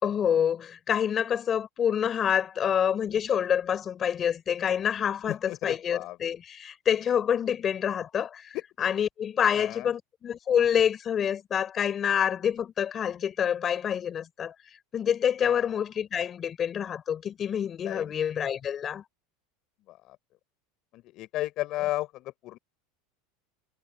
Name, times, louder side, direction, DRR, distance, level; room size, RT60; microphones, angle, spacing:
voice 1, 0.0-14.5 14.9-19.0, left 8 dB, 30° left, 4.3 m, -27 dB
voice 2, 5.5-6.2 9.5-9.9 15.4-15.7 17.8-18.1 19.9-20.2 20.9-22.6, left 16 dB, 50° left, 4.8 m, -34 dB
supercardioid pair, 130°, 0 cm